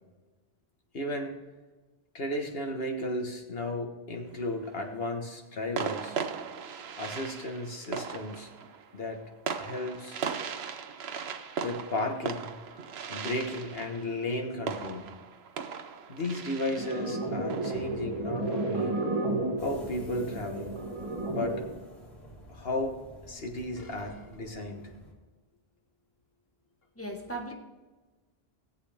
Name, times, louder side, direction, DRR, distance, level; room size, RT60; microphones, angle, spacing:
voice 1, 0.9-1.3 2.1-6.2 7.0-8.5 8.9-9.2 9.6-10.2 10.9-15.1 16.1-19.0 19.6-20.8 21.3-21.6 22.5-23.0 23.3-24.9, left 1 dB, 70° left, 3 dB, 1.6 m, -34 dB
sound 1, 4.2-4.8 5.8-19.2, right 6 dB, 80° right, 1.0 m, -38 dB
sound 2, 16.8-21.8, right 2 dB, 30° right, 1.7 m, -32 dB
sound 3, 19.6-25.1, equal, 90° left, 3.3 m, -49 dB
voice 2, 27.0-27.5, right 2 dB, 15° left, 1 dB, 1.4 m, -37 dB
18.5 x 7.9 x 3.5 m, 1.3 s
omnidirectional pair, 1.1 m